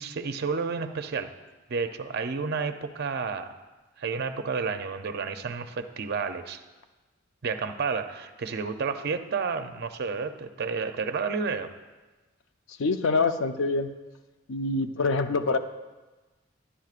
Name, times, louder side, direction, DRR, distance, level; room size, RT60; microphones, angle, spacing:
voice 1, 0.0-1.3 1.7-3.5 4.0-6.6 7.4-11.7, right 5 dB, 55° right, 8 dB, 0.5 m, -31 dB
voice 2, 12.8-13.9 14.5-15.6, left 3 dB, 70° left, 8 dB, 0.5 m, -25 dB
12.0 x 9.9 x 2.4 m, 1.2 s
head